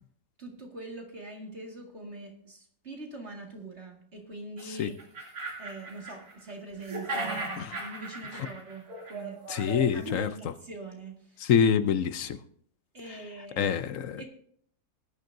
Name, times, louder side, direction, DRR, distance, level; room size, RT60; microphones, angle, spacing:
voice 1, 0.4-4.9 5.6-9.4 9.9-11.5 12.9-14.3, right 2 dB, 45° right, 2.4 m, -43 dB
sound 1, 4.6-4.7 5.0-6.5 6.8-10.2, right 2 dB, 70° right, 3.2 m, -37 dB
voice 2, 9.5-10.3 11.5-12.4 13.6-14.2, left 7 dB, 60° left, 1.0 m, -25 dB
20.5 x 10.5 x 2.6 m
omnidirectional pair, 1.7 m